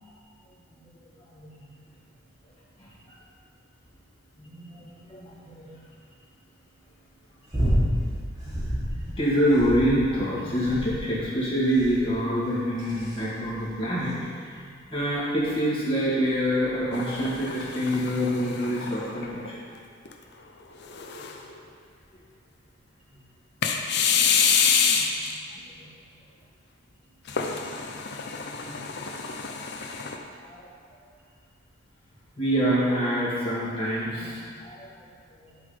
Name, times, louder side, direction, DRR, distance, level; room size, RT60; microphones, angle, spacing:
voice 1, 0.7-1.0 1.3-1.8 2.8-3.2 4.4-5.7 8.4-8.6 9.1-19.6 21.2-21.3 24.9-25.1 25.5-25.9 28.6-28.8 30.4-30.7 32.4-34.9 35.3-35.6, equal, 25° left, -8 dB, 1.8 m, -27 dB
sound 1, 7.5-8.0 8.4-9.0 9.5-10.1 10.6-11.1 11.7-12.1 12.8-13.2 14.1-14.2, equal, 20° right, 1.5 m, -27 dB
sound 2, 16.9-19.5 20.1-20.2 20.8-21.5 23.6-25.4 27.3-30.2, left 6 dB, 55° left, 0.6 m, -26 dB
11.0 x 3.9 x 5.0 m, 2.2 s
head